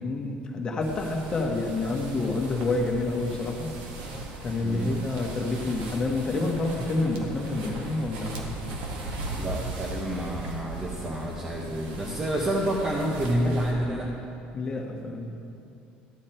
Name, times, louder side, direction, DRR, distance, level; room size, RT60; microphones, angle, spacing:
voice 1, 0.0-3.7 4.4-8.5 14.5-15.4, left 2 dB, 25° left, 1 dB, 1.4 m, -28 dB
sound 1, 0.8-13.7, right 2 dB, 75° right, 1.8 m, -38 dB
voice 2, 4.6-5.0 9.3-14.1, right 1 dB, 20° right, -3 dB, 1.1 m, -28 dB
13.5 x 9.6 x 4.4 m, 2.6 s
cardioid pair, 150°, 3 cm